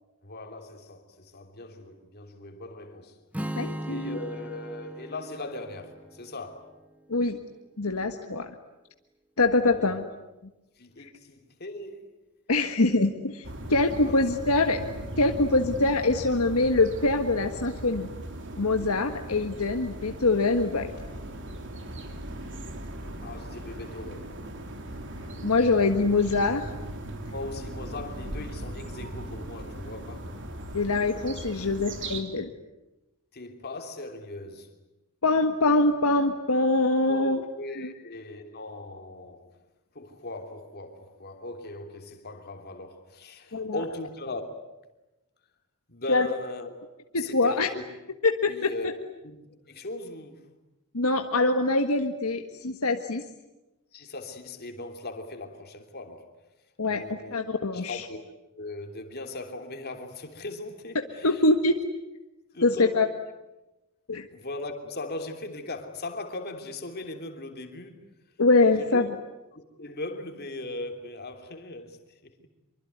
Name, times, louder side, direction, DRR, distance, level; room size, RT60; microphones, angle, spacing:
voice 1, 0.2-3.2 3.9-6.7 9.6-10.0 10.8-12.2 14.0-14.3 23.2-24.3 27.3-30.4 33.3-34.7 37.1-39.5 39.9-44.6 45.9-46.8 47.2-47.8 48.5-48.9 49.2-50.4 53.9-56.3 56.8-57.4 57.7-58.2 58.5-61.4 62.5-63.1 64.3-68.0 68.8-69.0 69.5-72.0, left 2 dB, 45° left, 3.2 m, -39 dB
Strum, 3.3-7.5, equal, 5° right, 1.1 m, -39 dB
voice 2, 3.6-4.2 7.1-7.4 7.8-8.5 9.4-10.0 11.0-11.1 12.5-14.8 15.2-18.1 18.6-20.9 25.4-26.7 30.7-32.5 35.2-37.4 37.8-37.9 43.5-43.8 46.1-46.3 47.1-47.7 48.2-48.7 50.9-53.2 56.8-58.0 61.2-61.8 62.6-63.1 64.1-64.3 68.4-69.1, left 2 dB, 75° left, 1.5 m, -24 dB
sound 1, 13.4-32.2, right 1 dB, 55° right, 3.2 m, -38 dB
25.5 x 24.0 x 9.5 m
head